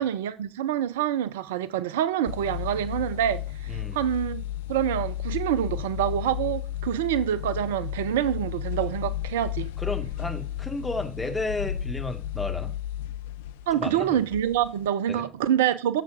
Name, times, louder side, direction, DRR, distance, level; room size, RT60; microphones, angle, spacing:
voice 1, 0.0-4.4 4.7-9.7 13.7-16.0, right 10 dB, 70° right, 0.3 m, -26 dB
sound 1, 2.3-14.9, left 12 dB, 70° left, 0.3 m, -33 dB
voice 2, 9.8-12.7 13.7-14.2 15.1-15.3, left 2 dB, 15° left, 1.6 m, -32 dB
8.9 x 6.8 x 2.5 m
figure-of-eight pair, 50°, 0 cm